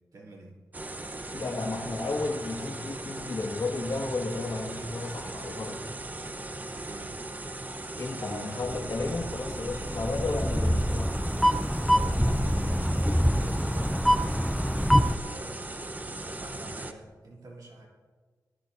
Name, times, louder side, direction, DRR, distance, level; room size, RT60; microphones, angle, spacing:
voice 1, 0.1-0.6 6.8-7.2 8.2-8.8 11.9-12.8 13.2-15.8 16.2-17.9, right 2 dB, 85° right, -4 dB, 3.2 m, -47 dB
sound 1, 0.7-16.9, right 2 dB, 25° right, 0.8 m, -38 dB
voice 2, 1.3-5.8 8.0-11.2, left 3 dB, 60° left, 1 dB, 1.8 m, -33 dB
sound 2, 8.6-15.2, equal, ahead, 0.4 m, -26 dB
19.5 x 14.0 x 2.7 m, 1.4 s
wide cardioid pair, 100°, 6 cm